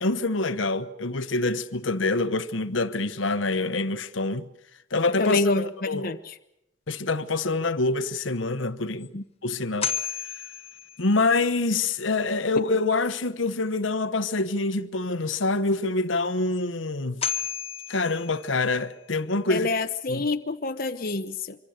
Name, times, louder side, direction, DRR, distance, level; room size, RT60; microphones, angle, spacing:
voice 1, 0.0-4.5 4.9-6.1 6.9-9.1 9.4-10.3 11.0-17.2 17.9-19.7 20.1-20.3, left 3 dB, 70° left, 1.1 m, -26 dB
voice 2, 5.2-6.2 9.1-9.2 19.5-21.6, left 2 dB, 45° left, 0.9 m, -26 dB
sound 1, 8.4-8.5 9.0-9.1 9.8-11.4 16.5-16.6 17.2-18.9, left 7 dB, 30° left, 1.3 m, -33 dB
25.5 x 24.5 x 6.7 m
head